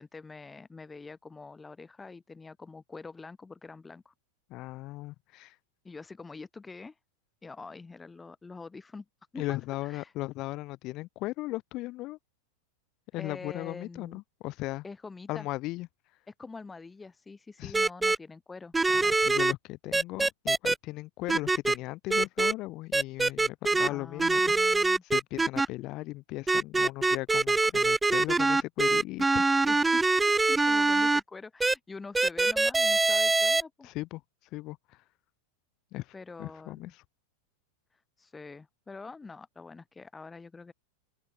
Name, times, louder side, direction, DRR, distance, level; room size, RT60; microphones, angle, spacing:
voice 1, 0.0-4.1 5.8-6.9 7.4-9.0 9.3-9.6 9.8-10.1 13.2-14.2 14.8-15.5 16.3-18.7 23.7-25.0 29.5-33.9 36.1-36.9 38.2-40.7, left 4 dB, 10° left, 5.2 m, -45 dB
voice 2, 4.5-5.6 9.4-12.2 13.1-14.8 15.3-15.9 17.6-17.7 18.9-24.8 25.0-29.5 33.8-34.2 34.5-34.8 35.9-36.1 36.4-37.0, left 19 dB, 40° left, 1.9 m, -37 dB
sound 1, 17.7-18.2 18.7-19.5 19.9-20.7 21.3-21.8 22.1-22.5 22.9-23.9 24.2-25.7 26.5-31.2 31.6-31.7 32.1-33.6, right 3 dB, 10° right, 0.3 m, -24 dB
open air
figure-of-eight pair, 90°, 0 cm